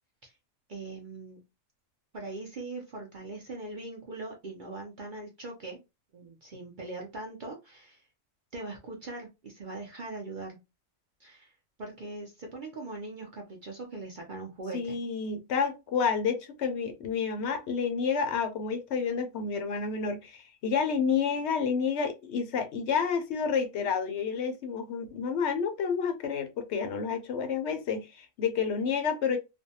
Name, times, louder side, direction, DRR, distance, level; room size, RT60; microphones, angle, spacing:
voice 1, 0.7-1.4 2.1-5.8 6.1-8.0 8.5-10.6 11.2-11.5 11.8-15.0, right 2 dB, 55° right, 0.5 m, -41 dB
voice 2, 14.7-29.4, left 6 dB, 65° left, 0.7 m, -29 dB
2.5 x 2.1 x 2.7 m
omnidirectional pair, 1.4 m